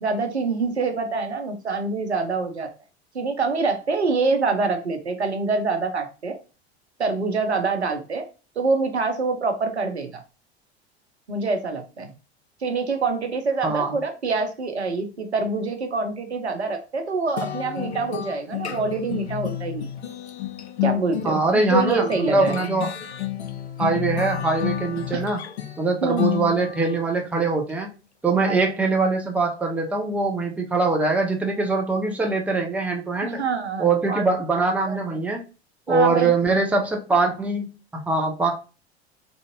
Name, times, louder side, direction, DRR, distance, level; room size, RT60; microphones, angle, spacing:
voice 1, 0.0-2.7 3.1-6.4 7.0-8.3 8.6-10.2 11.3-12.1 12.6-19.9 20.8-22.6 25.1-25.2 26.0-26.2 28.4-28.6 33.2-34.3 34.8-35.0 35.9-36.3, right 4 dB, 85° right, 6 dB, 0.6 m, -25 dB
sound 1, 17.4-27.0, left 12 dB, 80° left, 0.5 m, -30 dB
voice 2, 21.2-22.9 23.8-25.4 25.8-27.9 28.2-33.4 33.8-35.4 35.9-37.7 37.9-38.5, right 3 dB, 5° right, 1 dB, 0.5 m, -22 dB
3.3 x 2.5 x 2.6 m, 0.33 s
figure-of-eight pair, 75°, 33 cm